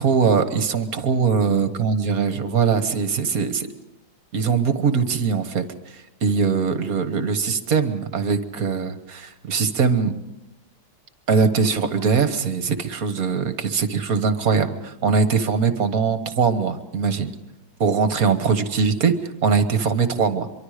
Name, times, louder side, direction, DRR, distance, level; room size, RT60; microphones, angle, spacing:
voice 1, 0.0-3.7 4.3-5.6 5.9-10.1 11.3-17.3 17.8-20.5, right 5 dB, 50° right, 9 dB, 1.4 m, -21 dB
25.0 x 23.5 x 5.0 m, 0.95 s
omnidirectional pair, 2.4 m